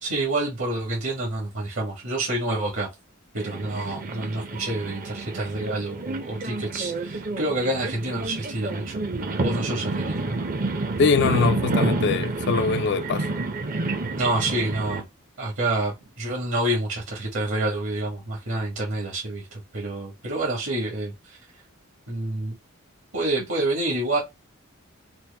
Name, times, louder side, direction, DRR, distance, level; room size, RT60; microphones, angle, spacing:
voice 1, 0.0-2.9 3.3-10.4 14.2-15.0 15.4-21.4 22.1-22.6 23.1-24.2, right 2 dB, 70° right, 1.5 m, -28 dB
sound 1, 3.4-15.0, right 2 dB, 40° right, 0.6 m, -29 dB
voice 2, 11.0-13.3, left 5 dB, 55° left, 0.3 m, -22 dB
4.4 x 2.1 x 3.3 m
head